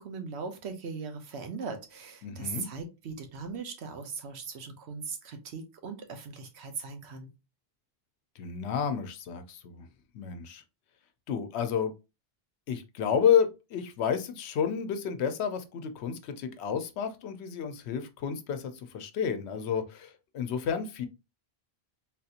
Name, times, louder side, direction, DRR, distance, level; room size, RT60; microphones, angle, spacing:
voice 1, 0.0-7.3, right 5 dB, 80° right, 1.0 m, -39 dB
voice 2, 2.2-2.7 8.4-9.9 10.1-10.6 11.3-11.9 12.7-21.1, left 7 dB, 85° left, 0.9 m, -30 dB
3.7 x 2.8 x 2.4 m
omnidirectional pair, 1.1 m